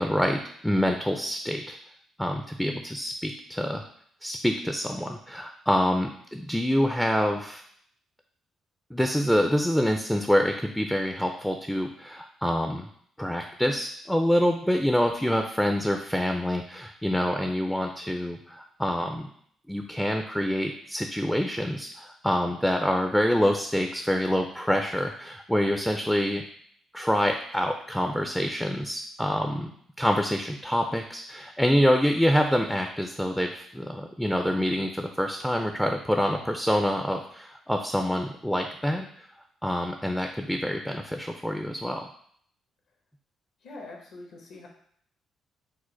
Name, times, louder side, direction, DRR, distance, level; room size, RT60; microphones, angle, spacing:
voice 1, 0.0-1.8 2.2-3.8 4.2-7.6 8.9-12.9 13.2-19.3 19.7-26.4 26.9-29.7 30.0-39.3 39.6-42.1, equal, 5° left, 4 dB, 0.4 m, -26 dB
voice 2, 43.6-44.7, left 2 dB, 70° left, 2 dB, 1.0 m, -43 dB
4.7 x 2.1 x 4.4 m, 0.63 s
cardioid pair, 90°, 0 cm